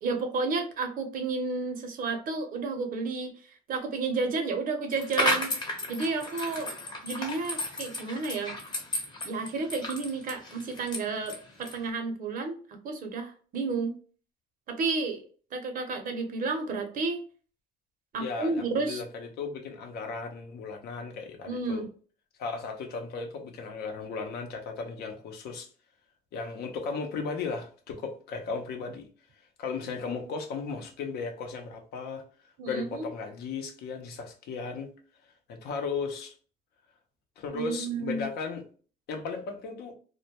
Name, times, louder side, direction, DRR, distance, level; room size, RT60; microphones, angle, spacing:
voice 1, 0.0-3.3 3.7-5.5 5.9-6.7 7.0-8.5 9.2-12.6 12.8-13.9 14.7-15.2 15.5-17.2 18.1-19.0 21.4-21.9 32.6-33.1 37.5-38.3, right 4 dB, 55° right, 0.7 m, -31 dB
sound 1, 4.9-11.9, left 2 dB, 25° left, 0.8 m, -33 dB
voice 2, 18.2-21.9 22.4-25.7 26.3-29.1 29.6-34.9 35.2-36.3 37.4-38.6 39.1-39.9, left 4 dB, 70° left, 0.6 m, -36 dB
2.1 x 2.1 x 2.8 m
cardioid pair, 110°, 17 cm